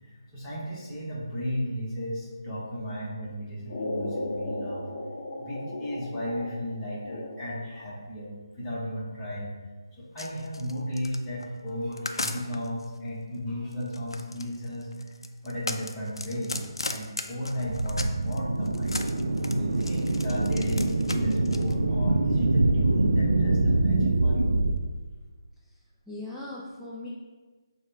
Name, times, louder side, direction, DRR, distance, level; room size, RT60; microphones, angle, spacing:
voice 1, 0.3-4.9 5.4-9.5 10.0-14.9 15.4-19.0 19.4-24.6, equal, 15° left, -8 dB, 1.1 m, -34 dB
sound 1, 3.7-7.7, left 1 dB, 35° left, 0.6 m, -36 dB
sound 2, 10.2-12.9 13.7-18.4 18.7-21.7, left 2 dB, 85° left, 0.4 m, -36 dB
sound 3, 17.5-24.8, right 2 dB, 75° right, 0.4 m, -24 dB
voice 2, 26.1-27.1, left 2 dB, 5° right, -9 dB, 0.4 m, -39 dB
6.2 x 2.3 x 3.4 m, 1.3 s
figure-of-eight pair, 155°, 2 cm